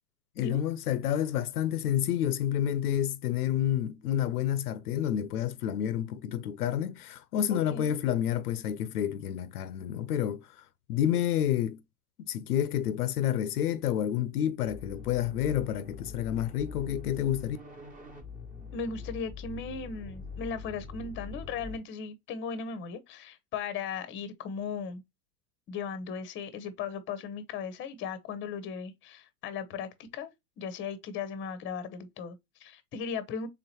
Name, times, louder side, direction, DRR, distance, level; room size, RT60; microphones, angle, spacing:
voice 1, 0.4-10.4 10.9-11.8 12.2-17.6, left 10 dB, 80° left, 0.6 m, -29 dB
voice 2, 7.5-7.9 11.1-11.2 18.7-25.0 25.7-30.3 30.6-33.5, left 5 dB, 25° left, 0.8 m, -37 dB
sound 1, 14.7-21.8, left 5 dB, 20° right, 1.2 m, -43 dB
3.8 x 3.6 x 2.9 m
hypercardioid pair, 100°, 45 cm